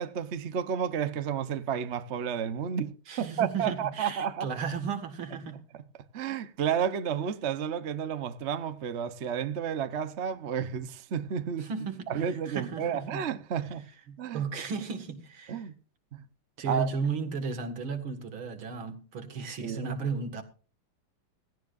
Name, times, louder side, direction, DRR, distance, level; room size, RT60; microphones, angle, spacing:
voice 1, 0.0-4.5 6.1-11.7 12.1-13.9 14.2-14.4 15.5-15.7 16.1-16.2 16.7-16.9 19.6-19.9, right 8 dB, 50° right, 0.9 m, -31 dB
voice 2, 3.1-5.6 11.6-13.3 14.1-15.7 16.6-20.4, right 5 dB, 70° right, 2.6 m, -35 dB
17.0 x 16.5 x 2.5 m
omnidirectional pair, 2.4 m